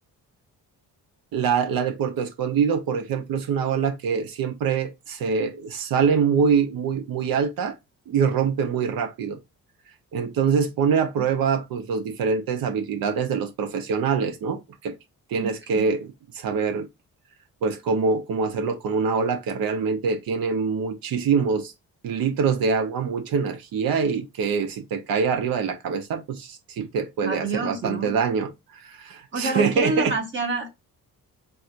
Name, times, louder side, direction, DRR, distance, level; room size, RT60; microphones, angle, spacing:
voice 1, 1.3-7.7 8.1-9.4 10.1-14.9 15.3-16.9 17.6-21.7 22.0-28.5 28.8-30.1, right 6 dB, 80° right, 0.9 m, -24 dB
voice 2, 15.4-15.8 27.2-28.1 29.3-30.7, right 3 dB, 35° right, 1.0 m, -28 dB
4.2 x 2.4 x 2.5 m
cardioid pair, 150°, 35 cm